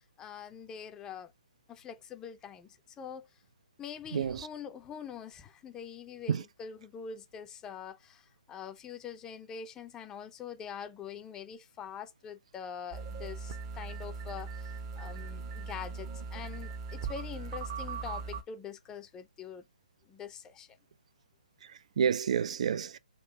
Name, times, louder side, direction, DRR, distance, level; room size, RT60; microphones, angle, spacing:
voice 1, 0.0-1.3 1.7-3.3 3.8-19.6 20.1-20.8, left 7 dB, 15° left, 0.5 m, -44 dB
voice 2, 4.1-4.5 6.3-6.4 21.6-23.0, right 7 dB, 55° right, 0.4 m, -30 dB
sound 1, 12.9-18.4, right 5 dB, 40° right, 0.8 m, -39 dB
3.8 x 2.5 x 4.2 m
figure-of-eight pair, 140°, 4 cm